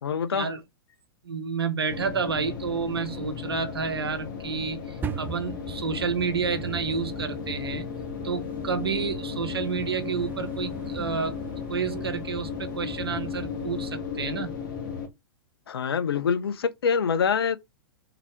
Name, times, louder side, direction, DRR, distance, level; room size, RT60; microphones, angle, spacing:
voice 1, 0.0-0.5 15.7-17.6, left 6 dB, 75° left, 0.7 m, -25 dB
voice 2, 1.2-7.9 8.2-11.4 11.7-14.5, right 5 dB, 85° right, 0.9 m, -30 dB
sound 1, 1.9-15.1, left 6 dB, 55° left, 1.3 m, -35 dB
sound 2, 5.0-13.8, right 6 dB, 15° right, 0.4 m, -41 dB
3.9 x 2.8 x 4.6 m
hypercardioid pair, 105°, 13 cm